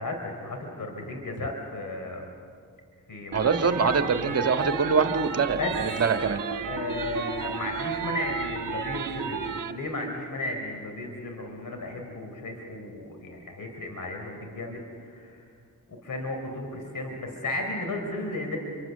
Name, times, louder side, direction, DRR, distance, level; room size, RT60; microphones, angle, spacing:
voice 1, 0.0-2.3 3.1-4.3 5.6-5.7 6.7-15.4 15.9-18.6, left 2 dB, 60° left, 3 dB, 4.1 m, -34 dB
voice 2, 3.3-6.4, right 5 dB, 40° right, 6 dB, 1.6 m, -24 dB
sound 1, 3.3-9.7, right 6 dB, 60° right, 1.5 m, -33 dB
29.0 x 24.5 x 6.7 m, 2.2 s
cardioid pair, 55°, 36 cm